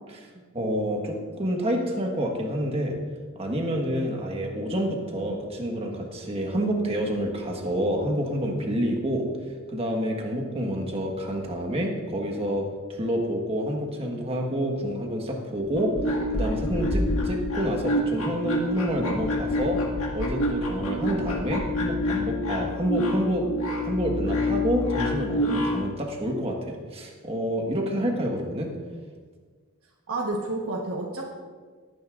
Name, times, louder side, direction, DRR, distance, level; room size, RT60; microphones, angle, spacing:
voice 1, 0.5-3.0 3.3-9.2 9.7-15.9 16.3-19.8 20.1-23.5 23.8-28.7, equal, 25° right, 1 dB, 1.4 m, -28 dB
sound 1, 15.6-25.9, left 1 dB, 70° left, 1.7 m, -27 dB
voice 2, 30.1-31.3, right 2 dB, 70° right, -1 dB, 1.2 m, -30 dB
18.5 x 9.5 x 2.5 m, 1.5 s
head